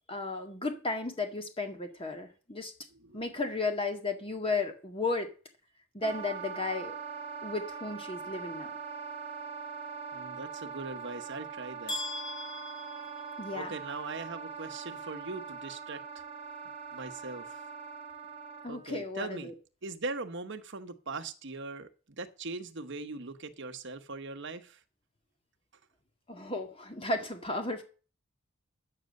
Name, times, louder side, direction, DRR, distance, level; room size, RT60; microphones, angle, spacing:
voice 1, 0.1-2.7 3.1-5.3 5.9-6.9 7.4-8.7 13.4-13.7 18.6-19.5 26.3-27.8, left 3 dB, 25° left, 5 dB, 1.9 m, -34 dB
voice 2, 2.9-3.2 10.1-12.0 13.5-16.0 16.9-17.6 18.7-19.5 19.8-21.9 22.2-24.8, right 3 dB, 55° right, 7 dB, 1.2 m, -40 dB
Wind instrument woodwind instrument, 6.0-18.9, right 6 dB, 30° right, 1.3 m, -42 dB
sound 1, 11.9-13.9, left 2 dB, 50° left, 5.8 m, -40 dB
10.5 x 8.7 x 6.6 m, 0.37 s
head